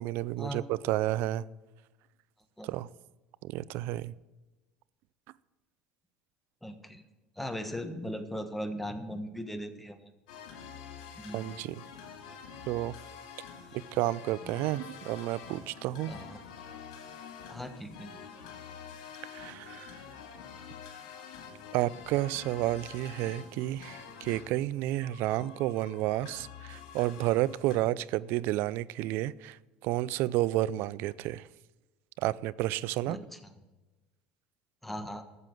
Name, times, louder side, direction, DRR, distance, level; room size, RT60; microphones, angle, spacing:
voice 1, 0.0-1.4 2.6-2.9 3.4-4.1 11.3-11.8 12.7-12.9 13.9-16.1 19.3-19.9 21.7-29.6 29.8-31.5 32.2-33.2, right 16 dB, 65° right, 0.4 m, -31 dB
voice 2, 6.6-7.0 7.4-10.1 11.2-11.4 14.4-14.5 16.1-16.4 17.5-18.1 25.3-25.5 33.1-33.5 34.8-35.2, equal, 5° left, 1.4 m, -39 dB
sound 1, 10.3-27.8, left 7 dB, 80° left, 2.4 m, -47 dB
13.5 x 7.6 x 6.2 m
hypercardioid pair, 85°, 4 cm